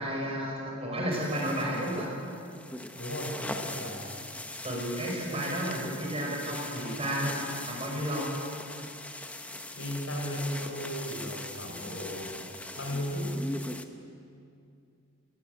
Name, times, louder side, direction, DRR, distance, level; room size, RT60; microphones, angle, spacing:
voice 1, 0.0-2.1 4.6-7.4 7.7-8.3, equal, 30° right, -1 dB, 5.7 m, -32 dB
sound 1, 1.1-13.8, left 1 dB, 5° left, 0.9 m, -41 dB
voice 2, 3.0-4.1 9.7-12.3 12.7-13.4, equal, 75° left, 1 dB, 4.9 m, -35 dB
20.0 x 18.5 x 9.5 m, 2.5 s
head